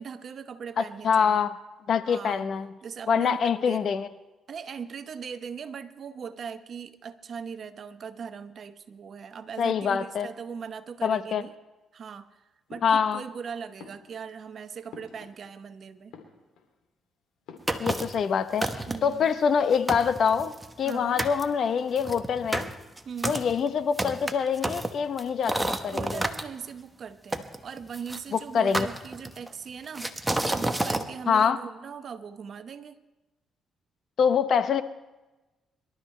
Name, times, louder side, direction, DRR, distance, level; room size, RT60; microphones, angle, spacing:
voice 1, 0.0-1.4 2.0-2.5 2.8-3.9 4.5-11.5 11.9-12.4 12.7-16.2 18.9-19.4 20.8-21.2 23.0-23.4 25.9-33.0, right 6 dB, 55° right, 10 dB, 0.9 m, -40 dB
voice 2, 0.8-1.5 1.9-2.7 3.1-4.1 9.6-10.3 11.0-11.4 12.8-13.2 17.8-22.7 23.2-26.2 28.3-28.9 31.3-31.6 34.2-34.8, left 6 dB, 60° left, 12 dB, 0.8 m, -25 dB
sound 1, 12.7-13.4 13.8-15.7 16.0-16.9 17.5-18.4 18.7-19.3, left 5 dB, 85° left, 2.7 m, -51 dB
sound 2, 17.7-18.2 18.6-19.2 19.6-19.7 19.9-20.9 21.2-21.4 22.0-26.4 27.3-28.2 28.7-29.5 30.0-31.1, right 1 dB, 10° right, 1.0 m, -30 dB
24.5 x 12.5 x 3.3 m, 1.1 s
cardioid pair, 90°, 0 cm